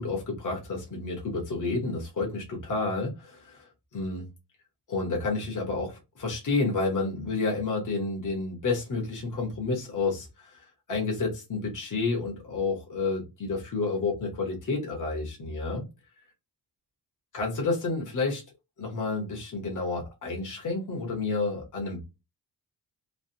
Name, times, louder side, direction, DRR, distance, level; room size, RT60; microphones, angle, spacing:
voice 1, 0.0-3.6 3.9-4.3 4.9-15.8 17.3-18.4 18.8-22.0, left 3 dB, 50° left, 1.2 m, -30 dB
3.2 x 2.4 x 2.7 m
cardioid pair, 95°, 41 cm